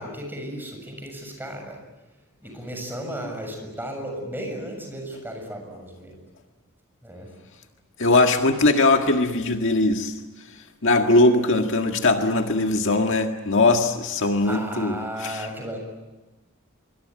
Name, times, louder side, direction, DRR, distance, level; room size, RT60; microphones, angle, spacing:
voice 1, 0.0-1.8 2.4-6.2 7.0-7.3 14.4-15.8, equal, 10° right, 3 dB, 6.9 m, -34 dB
voice 2, 8.0-10.1 10.8-15.5, left 2 dB, 60° left, 4 dB, 1.8 m, -20 dB
26.0 x 24.0 x 9.2 m, 1.1 s
head